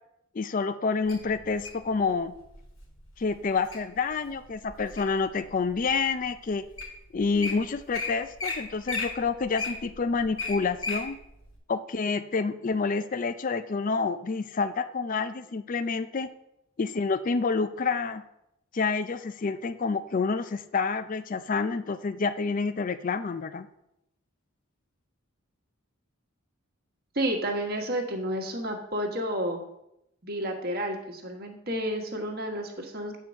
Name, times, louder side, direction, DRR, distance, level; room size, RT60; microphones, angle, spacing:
voice 1, 0.3-2.3 3.2-6.6 7.1-11.2 11.7-16.3 16.8-18.2 18.7-23.7, left 4 dB, 40° left, 12 dB, 0.4 m, -28 dB
Wild animals, 1.1-1.8 2.5-2.8 3.3-3.8 4.3-5.2 5.8-5.9 6.5-6.6 6.8-6.9 7.2-7.5 7.9-8.1 8.4-8.6 8.8-11.0 11.5-11.6, left 3 dB, 80° left, 2.8 m, -33 dB
voice 2, 27.1-29.6 30.2-33.2, right 1 dB, 45° right, 2 dB, 1.4 m, -31 dB
8.3 x 4.6 x 6.3 m, 0.83 s
head